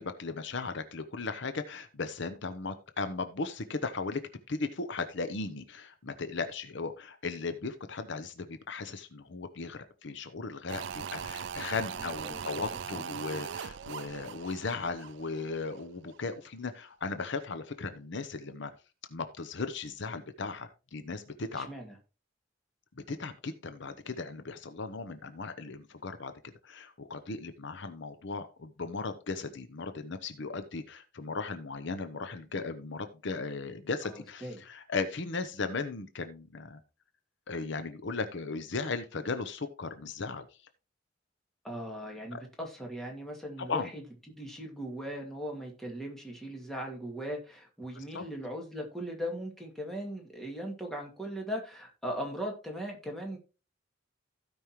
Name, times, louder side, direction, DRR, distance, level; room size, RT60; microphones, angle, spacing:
voice 1, 0.0-4.2 4.5-18.7 19.1-21.7 23.1-26.3 26.6-36.8 37.5-40.4 42.3-42.4 43.7-43.9 48.0-48.2, left 4 dB, 65° left, 9 dB, 0.8 m, -37 dB
sound 1, 10.7-15.9 16.1-16.2, right 7 dB, 65° right, 0.4 m, -40 dB
voice 2, 21.6-21.9 34.0-34.6 41.6-44.0 44.3-53.4, equal, ahead, 0 dB, 2.3 m, -39 dB
16.0 x 5.3 x 3.1 m, 0.31 s
head